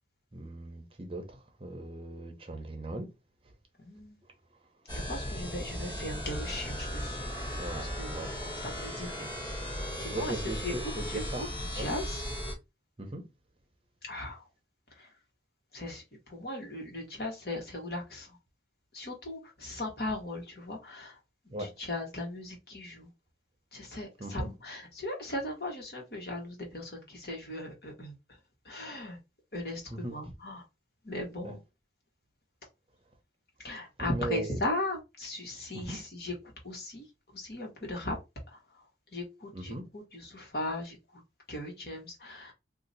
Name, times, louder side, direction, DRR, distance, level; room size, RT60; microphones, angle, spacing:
voice 1, 0.3-3.1 7.6-8.4 10.1-11.5 11.8-11.9 13.0-13.3 21.5-21.8 24.2-24.5 29.9-30.1 31.4-31.6 34.0-34.6 35.7-36.0 39.5-39.8, right 2 dB, 30° right, 0.7 m, -38 dB
voice 2, 3.8-4.2 4.9-9.3 10.0-10.7 11.1-12.2 14.0-14.5 14.9-15.1 15.7-18.4 18.9-21.2 21.4-23.1 23.7-28.1 28.6-29.2 29.5-30.6 31.0-31.6 33.6-36.3 36.6-37.1 37.3-38.2 38.5-38.6 39.1-41.2 41.5-42.5, left 1 dB, 60° left, 1.4 m, -38 dB
sound 1, 4.9-12.5, equal, 25° left, 1.6 m, -36 dB
2.8 x 2.5 x 4.0 m
head